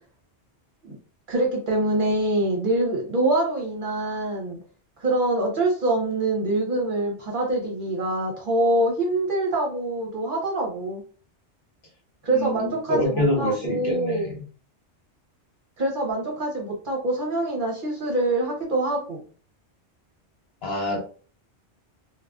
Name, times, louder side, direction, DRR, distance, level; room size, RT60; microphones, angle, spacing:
voice 1, 1.3-4.6 5.0-11.0 12.2-14.3 15.8-19.2, right 2 dB, 50° right, 0.8 m, -25 dB
voice 2, 12.3-14.2 20.6-21.0, left 1 dB, 65° left, 1.1 m, -26 dB
2.5 x 2.3 x 2.2 m
omnidirectional pair, 1.2 m